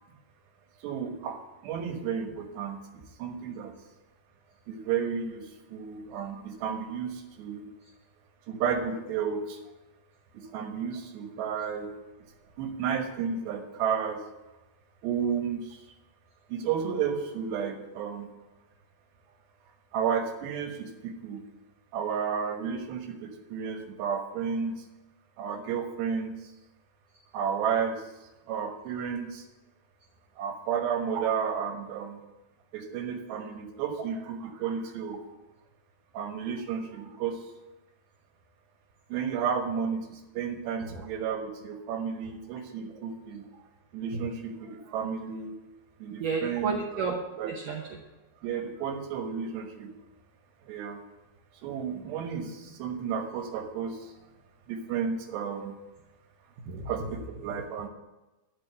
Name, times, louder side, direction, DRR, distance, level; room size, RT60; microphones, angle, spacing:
voice 1, 0.8-2.8 3.2-3.7 4.7-7.7 8.5-9.6 10.3-11.9 12.6-14.2 15.0-15.8 16.5-18.3 19.9-21.4 21.9-24.8 25.4-26.5 27.3-28.0 28.5-29.5 30.4-32.2 32.7-35.2 36.1-37.4 39.1-43.4 43.9-45.5 46.0-46.8 47.4-47.5 48.4-49.9 50.7-51.0 51.6-54.1 54.7-55.8 56.9-57.9, right 7 dB, 70° right, 4 dB, 3.2 m, -32 dB
voice 2, 46.2-47.1 47.4-47.8 56.7-56.9, right 5 dB, 90° right, 1 dB, 1.8 m, -31 dB
12.0 x 6.1 x 8.0 m, 1.0 s
omnidirectional pair, 5.5 m